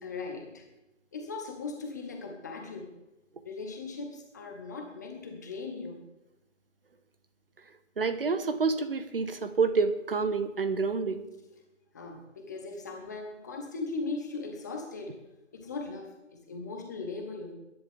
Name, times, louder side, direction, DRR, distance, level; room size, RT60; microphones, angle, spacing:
voice 1, 0.0-0.7 1.1-2.9 3.4-6.0 11.9-15.2 15.5-17.5, left 3 dB, 15° left, 2 dB, 0.9 m, -38 dB
voice 2, 8.0-11.2, right 4 dB, 50° right, 11 dB, 1.1 m, -28 dB
21.0 x 10.5 x 3.6 m, 0.99 s
figure-of-eight pair, 150°, 37 cm